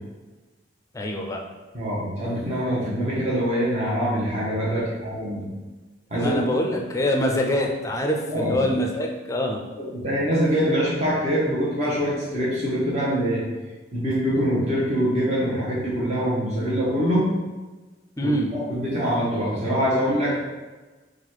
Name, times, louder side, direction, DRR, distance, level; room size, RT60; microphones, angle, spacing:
voice 1, 0.9-1.4 4.8-4.9 6.1-9.6 18.2-18.5, equal, 15° left, 1 dB, 0.5 m, -24 dB
voice 2, 1.7-5.4 6.1-6.4 8.3-8.6 9.8-13.4 13.9-17.3 18.2-20.4, equal, 40° right, -7 dB, 1.1 m, -24 dB
4.1 x 2.5 x 4.5 m, 1.2 s
head